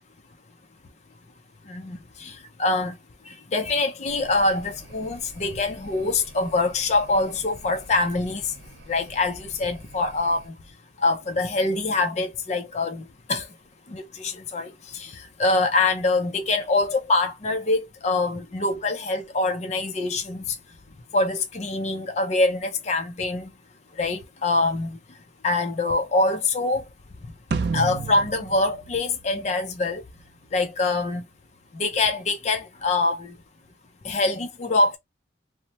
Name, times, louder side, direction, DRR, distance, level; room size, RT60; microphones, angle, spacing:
voice 1, 1.7-2.9 3.3-8.5 8.9-10.5 11.0-13.5 13.9-20.6 21.1-23.5 24.0-25.0 25.4-26.8 27.7-30.0 30.5-31.2 31.7-33.3 34.0-35.0, left 2 dB, 35° left, 0.4 m, -24 dB
sound 1, 4.1-10.5, right 1 dB, 80° right, 0.9 m, -47 dB
sound 2, 27.5-30.0, right 4 dB, 55° right, 0.3 m, -30 dB
2.9 x 2.0 x 2.8 m
head